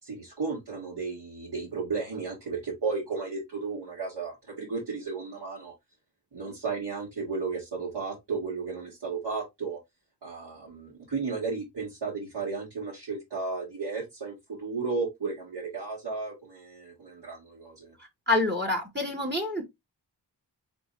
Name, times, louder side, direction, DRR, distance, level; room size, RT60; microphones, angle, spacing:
voice 1, 0.0-5.7 6.3-9.8 10.2-17.9, right 4 dB, 70° right, 2.1 m, -34 dB
voice 2, 18.3-19.6, left 2 dB, 25° right, 1.2 m, -27 dB
4.1 x 3.6 x 3.1 m
wide cardioid pair, 95°, 43 cm